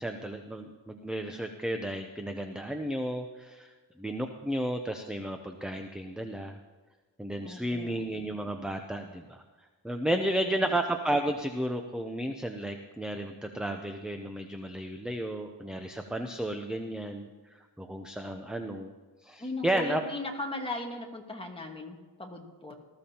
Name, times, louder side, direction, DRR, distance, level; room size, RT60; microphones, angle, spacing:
voice 1, 0.0-3.7 4.0-6.6 7.2-9.4 9.8-18.9 19.2-20.0, right 1 dB, ahead, 5 dB, 0.5 m, -33 dB
voice 2, 7.4-8.1 10.1-10.7 19.4-22.7, left 2 dB, 15° left, 1 dB, 1.5 m, -38 dB
19.0 x 14.0 x 2.9 m, 1.3 s
wide cardioid pair, 160°, 41 cm